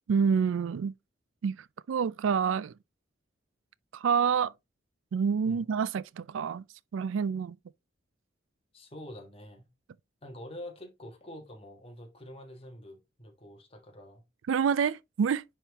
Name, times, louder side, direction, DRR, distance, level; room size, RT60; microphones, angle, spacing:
voice 1, 0.1-0.9 1.4-2.8 3.9-4.5 5.1-6.7 6.9-7.6 14.5-15.4, right 6 dB, 90° right, 0.4 m, -27 dB
voice 2, 8.7-9.7 10.2-14.2, left 1 dB, 30° left, 1.4 m, -46 dB
9.9 x 3.6 x 2.9 m
head